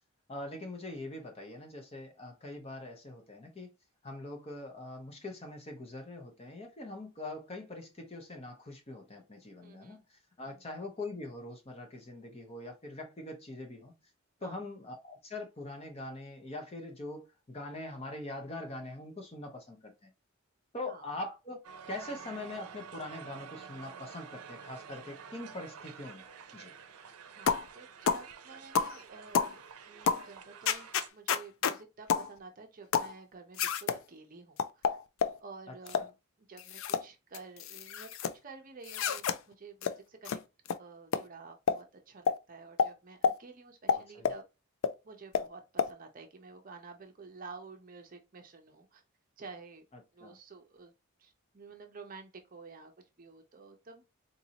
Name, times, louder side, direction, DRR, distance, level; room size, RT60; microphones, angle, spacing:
voice 1, 0.3-3.7 4.0-13.9 14.4-20.1 20.7-26.2 26.5-26.7 35.9-36.0 43.9-44.3 50.2-50.4, left 2 dB, 25° left, 0.7 m, -43 dB
voice 2, 9.6-10.0 10.4-10.6 14.4-14.6 20.9-21.0 27.3-29.6 29.8-35.0 35.4-38.1 38.4-40.4 40.8-44.4 45.0-49.0 49.4-49.9 50.1-50.9 51.2-54.0, right 4 dB, 40° right, 0.6 m, -51 dB
Crowd, 21.6-31.1, right 6 dB, 90° right, 0.5 m, -49 dB
sound 1, 27.5-27.7 28.1-28.3 28.8-29.0 29.3-29.5 30.1-30.3 30.7-31.8 32.1-32.3 32.9-33.1 33.6-34.0 34.6-35.4 35.9-36.1 36.6-37.0 37.3-38.3 38.9-39.4 39.8-39.9 40.3-40.4 40.7-40.8 41.1-41.2 41.7-41.8 42.3-42.4 42.8-42.9 43.2-43.4 43.9-44.4 44.8-44.9 45.3-45.5 45.8-45.9, left 6 dB, 65° left, 0.3 m, -29 dB
4.0 x 2.6 x 2.8 m
head